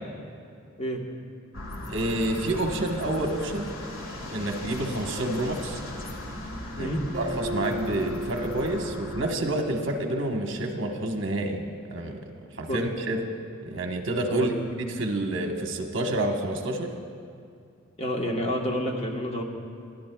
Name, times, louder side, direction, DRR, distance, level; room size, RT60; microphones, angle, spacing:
sound 1, 1.5-9.3, left 1 dB, 90° left, 1.6 m, -38 dB
voice 1, 1.9-3.7 4.3-5.8 6.8-6.9 7.2-11.6 11.9-13.2 13.6-14.5 14.8-16.9, right 1 dB, 65° right, 3 dB, 1.1 m, -28 dB
Acoustic guitar, 7.1-10.7, right 1 dB, 35° right, 1.4 m, -36 dB
voice 2, 18.0-19.4, equal, 30° left, 0 dB, 1.2 m, -28 dB
21.5 x 13.5 x 2.3 m, 2.4 s
head